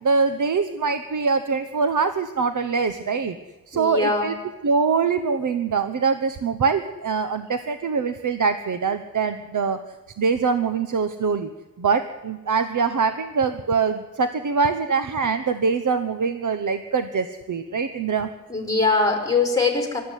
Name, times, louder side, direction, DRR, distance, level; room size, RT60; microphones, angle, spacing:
voice 1, 0.0-3.4 3.7-4.3 4.6-9.8 10.2-11.5 11.8-18.3, right 5 dB, 60° right, 9 dB, 1.1 m, -23 dB
voice 2, 3.7-4.3 18.5-20.0, left 3 dB, 10° left, 2 dB, 4.9 m, -21 dB
24.5 x 13.5 x 9.3 m, 1.2 s
wide cardioid pair, 145°, 35 cm